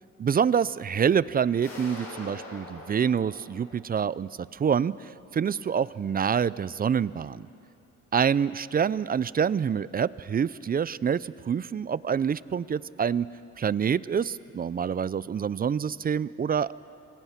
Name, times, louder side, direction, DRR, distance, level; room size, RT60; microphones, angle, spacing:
voice 1, 0.2-4.9 5.3-7.5 8.1-13.3 13.6-16.7, right 7 dB, 30° right, 19 dB, 0.4 m, -26 dB
sound 1, 1.6-4.5, left 2 dB, 50° left, 7.0 m, -44 dB
28.0 x 22.0 x 5.8 m, 2.7 s
cardioid pair, 90°, 30 cm